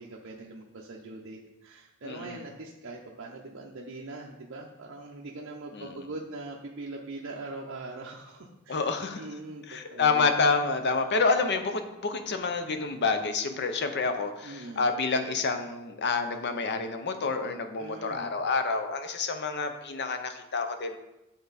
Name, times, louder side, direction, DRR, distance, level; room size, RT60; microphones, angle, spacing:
voice 1, 0.0-8.9 9.2-10.3 14.4-14.9 17.8-18.3, right 2 dB, 60° right, -2 dB, 0.6 m, -42 dB
voice 2, 2.0-2.4 5.7-6.0 8.7-9.3 9.7-21.0, left 4 dB, 55° left, 7 dB, 0.6 m, -28 dB
9.2 x 3.9 x 4.0 m, 0.97 s
head